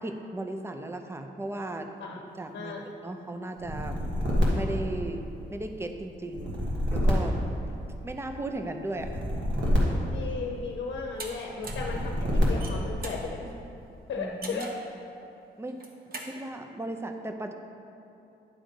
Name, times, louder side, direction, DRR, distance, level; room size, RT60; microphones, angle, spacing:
voice 1, 0.0-4.0 4.4-5.2 5.5-6.6 6.9-7.4 8.0-9.2 14.2-14.7 15.6-15.8 16.2-17.5, right 2 dB, 15° right, 5 dB, 0.5 m, -36 dB
sound 1, 3.6-5.6 6.2-8.2 8.9-10.8 11.6-12.9, equal, 85° right, 1.5 m, -28 dB
voice 2, 10.1-13.5 14.1-14.7, left 4 dB, 80° left, 0 dB, 0.7 m, -35 dB
sound 2, 11.2-11.3 11.6-11.9 12.4-13.2 14.4-14.8 15.7-16.3, right 3 dB, 55° right, 0.9 m, -40 dB
10.0 x 3.8 x 5.3 m, 2.8 s
wide cardioid pair, 130°, 19 cm